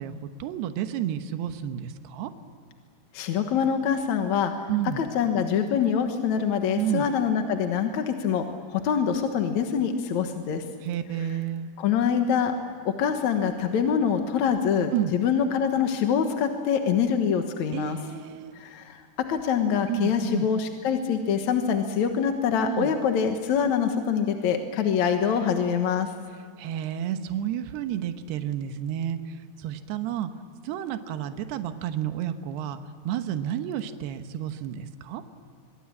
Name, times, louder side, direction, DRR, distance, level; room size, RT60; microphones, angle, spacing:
voice 1, 0.0-2.3 4.7-5.1 6.8-7.1 10.8-11.7 14.9-15.1 17.7-18.6 19.9-20.5 22.6-23.0 26.6-30.3 30.6-32.8 33.0-35.2, right 10 dB, 80° right, 8 dB, 3.2 m, -31 dB
voice 2, 3.1-4.7 5.0-10.6 11.8-12.5 12.9-18.0 18.6-19.0 19.3-26.1, left 7 dB, 60° left, 5 dB, 2.2 m, -25 dB
24.5 x 23.0 x 8.6 m, 2.1 s
omnidirectional pair, 4.7 m